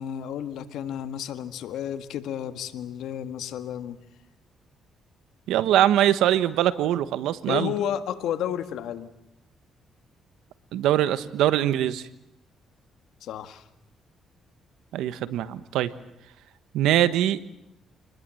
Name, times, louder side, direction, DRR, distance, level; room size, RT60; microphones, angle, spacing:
voice 1, 0.0-4.0 7.5-9.1 13.2-13.7, left 10 dB, 80° left, 10 dB, 1.7 m, -32 dB
voice 2, 5.5-7.7 10.7-12.0 14.9-15.9 16.7-17.4, right 12 dB, 90° right, 14 dB, 1.2 m, -22 dB
27.5 x 20.5 x 7.8 m, 0.83 s
cardioid pair, 90°, 0 cm